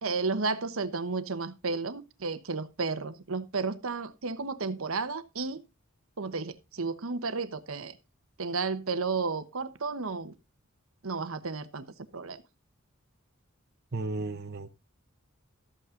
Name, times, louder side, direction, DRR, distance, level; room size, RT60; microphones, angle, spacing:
voice 1, 0.0-5.6 6.2-8.0 8.4-10.3 11.0-11.9 12.1-12.4, right 4 dB, 75° right, 1.1 m, -32 dB
voice 2, 13.9-14.7, right 2 dB, 50° right, 0.9 m, -34 dB
13.5 x 8.5 x 3.7 m
head